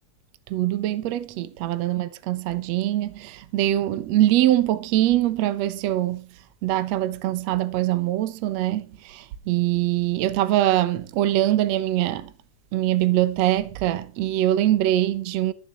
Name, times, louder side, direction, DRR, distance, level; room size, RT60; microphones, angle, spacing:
voice 1, 0.5-6.3 6.6-12.3 12.7-15.5, right 14 dB, 65° right, 2.0 m, -23 dB
14.5 x 7.0 x 6.8 m
omnidirectional pair, 3.7 m